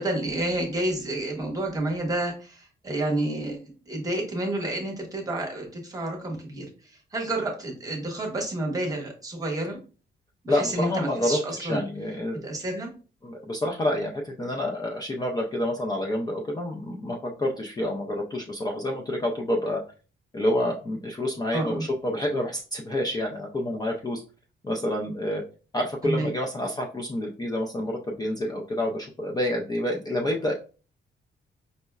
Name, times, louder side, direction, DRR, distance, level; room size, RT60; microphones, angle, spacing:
voice 1, 0.0-9.8 10.4-11.8 12.4-12.9 21.5-21.8 26.0-26.3, right 1 dB, 20° right, 0 dB, 0.9 m, -30 dB
voice 2, 10.5-12.5 13.2-19.8 20.3-24.2 24.6-25.4 25.7-30.5, left 1 dB, 20° left, -1 dB, 0.4 m, -28 dB
5.1 x 2.0 x 2.3 m, 0.36 s
wide cardioid pair, 165°, 20 cm